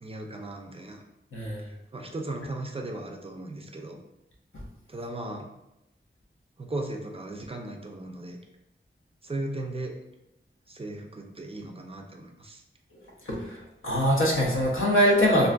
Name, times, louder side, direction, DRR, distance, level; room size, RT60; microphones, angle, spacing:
voice 1, 0.0-1.0 1.9-4.0 4.9-5.5 6.6-8.4 9.2-9.9 10.7-12.6, right 2 dB, 30° right, 2 dB, 0.3 m, -36 dB
voice 2, 1.3-1.6 4.5-4.6 13.3-13.6 13.8-15.5, equal, 80° left, -3 dB, 0.7 m, -23 dB
2.5 x 2.4 x 2.2 m, 0.88 s
wide cardioid pair, 65°, 21 cm